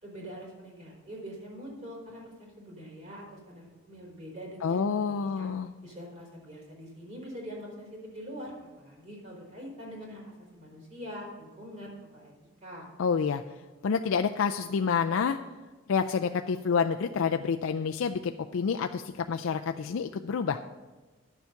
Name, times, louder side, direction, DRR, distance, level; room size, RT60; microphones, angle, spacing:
voice 1, 0.0-5.5 5.8-12.3 12.6-12.9, equal, 35° right, -2 dB, 3.6 m, -44 dB
voice 2, 4.6-5.7 13.0-13.4 13.8-15.4 15.9-20.6, left 6 dB, 75° left, 6 dB, 0.4 m, -28 dB
11.0 x 7.0 x 5.8 m, 1.3 s
head